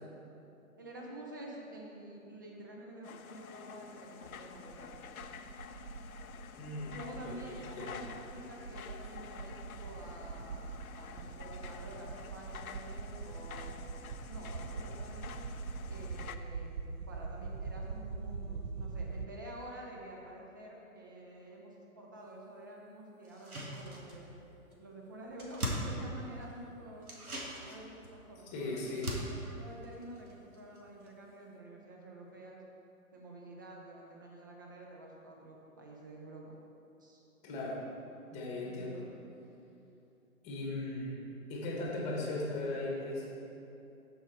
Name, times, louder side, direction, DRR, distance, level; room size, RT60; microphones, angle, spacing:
voice 1, 0.8-5.0 6.8-13.7 14.3-15.4 15.9-24.3 24.8-27.1 27.6-29.0 29.5-32.6 33.1-36.5 37.0-37.2 38.6-38.9, right 1 dB, 15° right, -1 dB, 0.5 m, -49 dB
sound 1, 3.0-16.4, left 7 dB, 75° left, 0.6 m, -49 dB
sound 2, 4.3-19.3, right 4 dB, 60° right, 0.7 m, -43 dB
voice 2, 6.6-8.0 28.5-29.2 37.4-37.9 38.3-39.1 40.4-41.2 41.5-43.3, left 2 dB, 15° left, -2 dB, 1.2 m, -38 dB
sound 3, 23.3-24.4 24.7-24.8 25.1-26.6 27.0-30.8 31.1-31.2, equal, 85° right, 1.9 m, -41 dB
13.0 x 4.7 x 4.5 m, 2.8 s
figure-of-eight pair, 140°, 43 cm